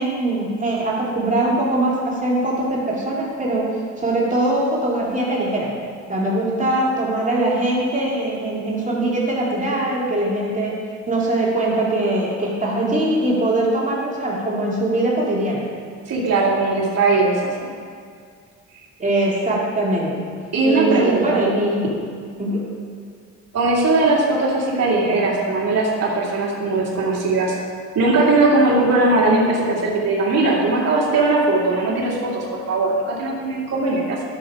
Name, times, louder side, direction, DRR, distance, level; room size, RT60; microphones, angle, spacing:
voice 1, 0.0-5.7 6.1-10.7 11.1-15.6 19.0-20.1 20.6-21.9 22.4-22.7, right 1 dB, 25° right, -5 dB, 2.5 m, -21 dB
voice 2, 16.1-17.7 20.5-21.4 23.5-27.5 27.9-34.2, right 2 dB, 55° right, -5 dB, 2.5 m, -19 dB
12.5 x 6.4 x 4.8 m, 2.1 s
cardioid pair, 90°, 30 cm